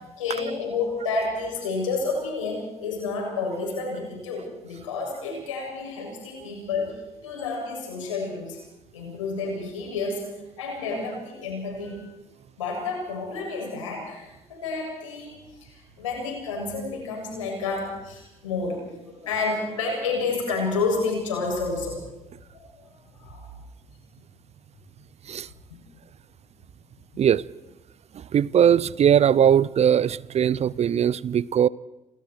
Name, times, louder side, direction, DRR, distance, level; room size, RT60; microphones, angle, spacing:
voice 1, 0.2-7.0 7.2-8.6 8.9-10.2 10.6-12.0 12.6-21.9 22.3-23.5, left 4 dB, 85° left, 0 dB, 7.6 m, -30 dB
voice 2, 28.1-31.7, right 9 dB, 40° right, 22 dB, 0.7 m, -20 dB
28.5 x 26.0 x 4.7 m, 0.94 s
hypercardioid pair, 50°, 16 cm